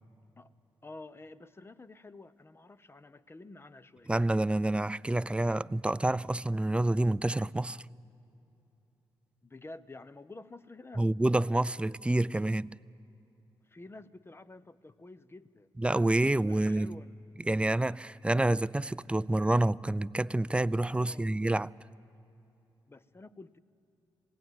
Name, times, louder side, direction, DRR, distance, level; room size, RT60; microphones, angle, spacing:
voice 1, 0.8-4.1 9.4-11.1 13.6-15.7 16.5-17.4 20.9-21.3 22.9-23.6, left 2 dB, 25° left, 0.8 m, -50 dB
voice 2, 4.1-7.8 11.0-12.7 15.8-16.9 17.5-21.7, right 1 dB, 10° right, 0.4 m, -28 dB
19.5 x 17.0 x 9.3 m
supercardioid pair, 55°, 10 cm